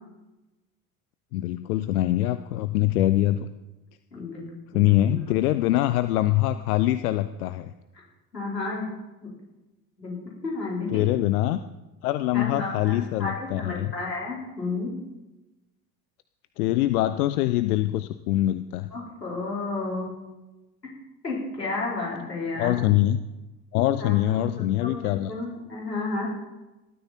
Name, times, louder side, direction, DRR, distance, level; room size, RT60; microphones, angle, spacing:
voice 1, 1.3-3.5 4.7-7.7 10.9-11.6 12.0-13.9 16.6-18.9 22.6-23.2 23.7-25.3, left 14 dB, 65° left, 12 dB, 0.8 m, -23 dB
voice 2, 4.1-5.1 8.3-8.9 9.2-9.3 10.0-11.0 12.3-14.9 18.9-20.1 21.2-22.9 23.8-26.3, left 3 dB, 85° left, -4 dB, 4.9 m, -32 dB
19.0 x 13.0 x 4.4 m, 1.0 s
figure-of-eight pair, 60°, 48 cm